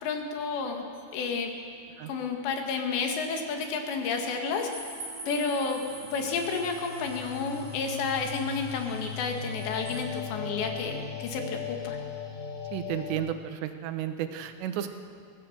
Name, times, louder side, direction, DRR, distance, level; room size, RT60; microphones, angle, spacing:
voice 1, 0.0-0.8 1.1-1.5 2.1-4.7 5.3-5.8 6.1-12.0, left 5 dB, 75° left, 3 dB, 4.0 m, -31 dB
sound 1, 1.7-13.1, left 5 dB, 40° left, 6.2 m, -40 dB
sound 2, 4.7-10.0, right 1 dB, 5° right, 4.7 m, -46 dB
voice 2, 12.7-14.9, right 10 dB, 80° right, 8 dB, 3.1 m, -32 dB
22.5 x 16.5 x 7.2 m, 2.2 s
omnidirectional pair, 5.1 m